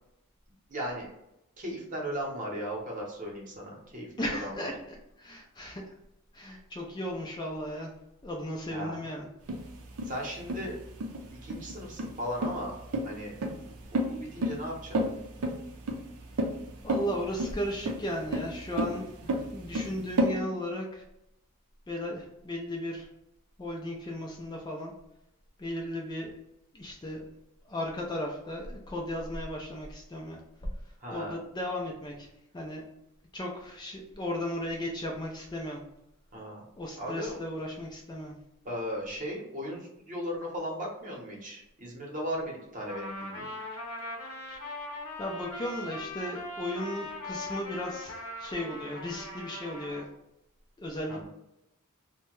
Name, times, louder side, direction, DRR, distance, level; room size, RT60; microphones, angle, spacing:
voice 1, 0.7-1.1 1.6-4.7 8.7-9.0 10.0-10.8 11.4-12.8 13.0-13.4 14.0-15.0 31.0-31.4 36.3-36.7 37.0-37.4 38.6-43.5 51.1-51.3, equal, 35° right, -2 dB, 0.8 m, -37 dB
voice 2, 4.2-4.7 5.2-5.9 6.3-7.9 8.2-9.3 16.8-21.0 21.9-23.1 23.6-24.9 25.6-26.3 26.7-27.3 27.7-30.7 31.1-32.3 32.5-32.8 33.3-35.8 36.8-38.4 44.5-44.6 45.2-50.1 50.8-51.3, left 1 dB, 20° left, 0 dB, 0.4 m, -35 dB
sound 1, 9.5-20.3, right 1 dB, 85° right, 0.5 m, -31 dB
Trumpet, 42.9-50.1, left 1 dB, 65° left, 0.8 m, -40 dB
2.7 x 2.1 x 3.0 m, 0.85 s
head